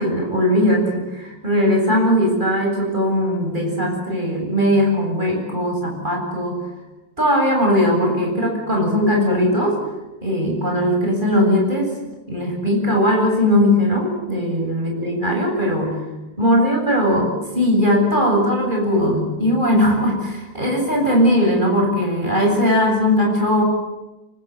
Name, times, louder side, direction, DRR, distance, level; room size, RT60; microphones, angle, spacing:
voice 1, 0.0-6.6 7.2-9.8 10.2-11.9 12.3-16.0 16.4-23.6, equal, 25° right, 1 dB, 8.1 m, -19 dB
25.0 x 25.0 x 9.4 m, 1.1 s
omnidirectional pair, 1.8 m